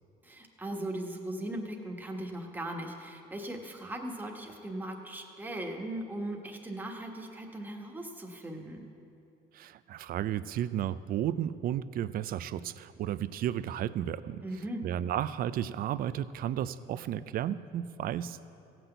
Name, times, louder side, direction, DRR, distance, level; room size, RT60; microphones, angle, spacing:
voice 1, 0.2-8.9 14.4-14.9, right 1 dB, 10° right, 1 dB, 1.4 m, -38 dB
voice 2, 9.5-14.4 14.8-18.6, right 11 dB, 60° right, 15 dB, 0.5 m, -33 dB
15.5 x 6.0 x 7.9 m, 2.7 s
cardioid pair, 110°, 17 cm